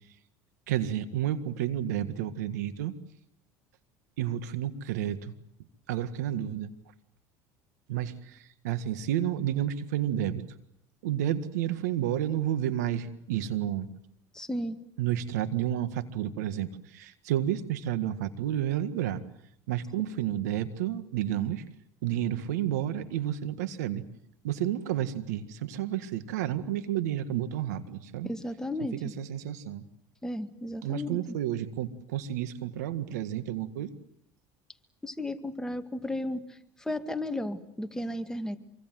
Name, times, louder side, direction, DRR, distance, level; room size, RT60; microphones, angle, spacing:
voice 1, 0.7-2.9 4.2-5.3 5.9-6.7 7.9-8.4 8.6-10.4 11.0-13.9 15.0-19.2 19.7-21.6 22.0-24.0 24.4-28.3 29.0-29.8 30.8-33.9, right 11 dB, 90° right, 11 dB, 1.8 m, -31 dB
voice 2, 14.3-14.8 28.2-29.1 30.2-31.4 35.0-38.6, left 1 dB, 5° left, 7 dB, 2.1 m, -34 dB
26.0 x 24.0 x 7.8 m, 0.74 s
supercardioid pair, 100°, 9 cm